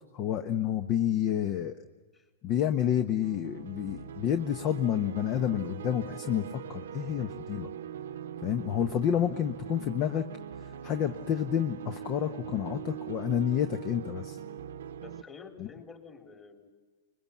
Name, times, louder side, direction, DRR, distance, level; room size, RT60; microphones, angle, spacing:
voice 1, 0.1-1.8 2.4-7.7 8.4-10.3 10.8-14.4 15.6-15.7, left 10 dB, 40° left, 9 dB, 1.1 m, -29 dB
sound 1, 3.2-15.2, right 8 dB, 70° right, 0.9 m, -42 dB
voice 2, 15.0-16.7, left 5 dB, 25° left, 3 dB, 4.0 m, -49 dB
25.0 x 21.5 x 7.4 m, 1.4 s
hypercardioid pair, 110°, 0 cm